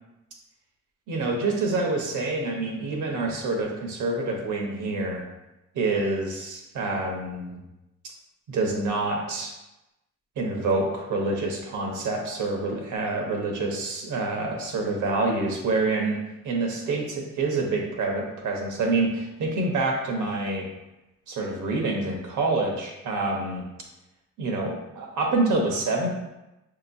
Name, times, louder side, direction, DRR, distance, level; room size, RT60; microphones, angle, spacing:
voice 1, 1.1-5.2 5.7-7.6 8.5-9.5 10.4-20.7 21.3-23.6 24.4-26.1, right 3 dB, 80° right, 0 dB, 1.1 m, -27 dB
6.4 x 2.9 x 2.6 m, 0.96 s
cardioid pair, 90°, 30 cm